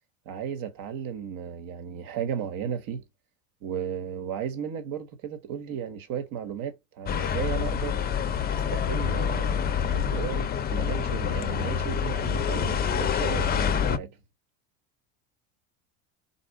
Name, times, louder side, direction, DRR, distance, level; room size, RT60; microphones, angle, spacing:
voice 1, 0.2-3.0 3.6-8.0 8.5-14.1, right 8 dB, 55° right, 1.4 m, -35 dB
sound 1, 7.1-14.0, left 7 dB, 25° left, 0.6 m, -27 dB
4.3 x 2.4 x 4.7 m
supercardioid pair, 110°, 41 cm